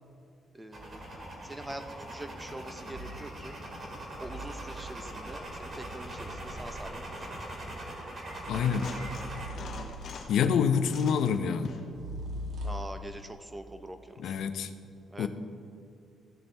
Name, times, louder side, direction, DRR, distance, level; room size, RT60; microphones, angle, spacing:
voice 1, 0.5-1.1 1.4-3.6 4.2-7.3 12.6-14.4 15.1-15.3, right 1 dB, 15° right, 8 dB, 0.8 m, -44 dB
sound 1, 0.7-9.5, right 1 dB, 40° right, 2.5 m, -41 dB
sound 2, 2.9-3.2 4.1-7.1 8.3-10.5 11.9-13.0, equal, 70° right, 1.5 m, -42 dB
voice 2, 8.5-8.9 10.3-11.7 14.2-14.7 15.2-15.3, left 7 dB, 75° left, 10 dB, 0.6 m, -27 dB
sound 3, 8.6-10.4 10.8-12.0 13.5-13.6, left 4 dB, 60° left, 1.0 m, -43 dB
15.0 x 7.1 x 3.4 m, 2.6 s
cardioid pair, 90°, 0 cm